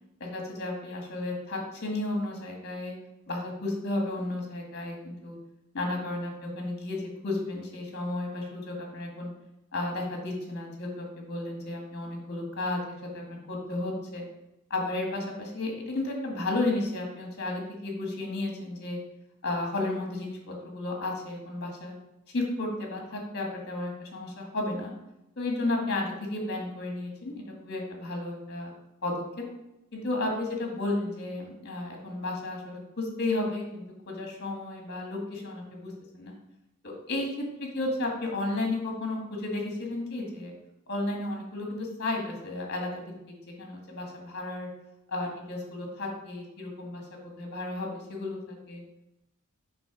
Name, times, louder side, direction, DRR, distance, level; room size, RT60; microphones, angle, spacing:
voice 1, 0.2-2.9 3.3-5.4 5.7-9.3 9.7-12.8 13.1-14.2 14.7-19.0 19.4-21.9 22.3-24.9 25.4-28.7 29.0-29.5 29.9-36.3 36.8-40.5 40.9-44.7 45.1-47.0 47.4-48.8, left 2 dB, 50° left, 1 dB, 1.8 m, -33 dB
6.9 x 3.4 x 6.0 m, 0.89 s
head